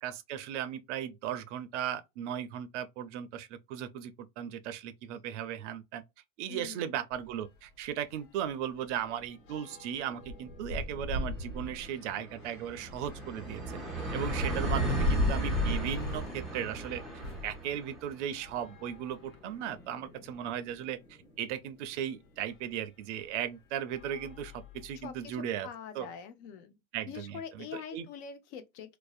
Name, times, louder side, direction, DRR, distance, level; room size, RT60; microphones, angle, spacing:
voice 1, 0.0-6.0 6.4-13.8 14.1-17.0 17.4-25.7 25.9-26.1 26.9-28.1, right 10 dB, 60° right, 0.5 m, -37 dB
voice 2, 6.5-6.9 25.0-26.8 27.1-29.0, left 7 dB, 50° left, 0.6 m, -44 dB
sound 1, 7.1-7.3 7.7-7.8 8.1-17.6 18.3-19.6 20.3-20.4 20.7-20.8 22.5-22.6 23.2-23.4 23.9-25.1, left 1 dB, 80° left, 1.0 m, -37 dB
sound 2, 9.4-9.5 9.7-21.2, right 2 dB, ahead, 0.4 m, -38 dB
2.6 x 2.0 x 2.3 m
supercardioid pair, 145°, 42 cm